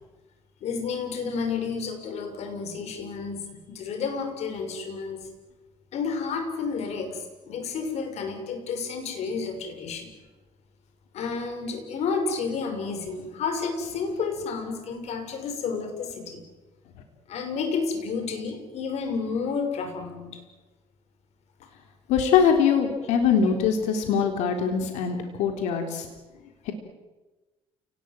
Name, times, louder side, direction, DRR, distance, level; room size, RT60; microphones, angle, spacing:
voice 1, 0.6-5.3 5.9-10.1 11.1-16.4 17.3-20.4, left 5 dB, 65° left, 7 dB, 6.4 m, -31 dB
voice 2, 22.1-26.1 26.7-26.8, left 7 dB, 85° left, 5 dB, 3.6 m, -22 dB
29.5 x 19.5 x 9.3 m, 1.2 s
cardioid pair, 100°, 12 cm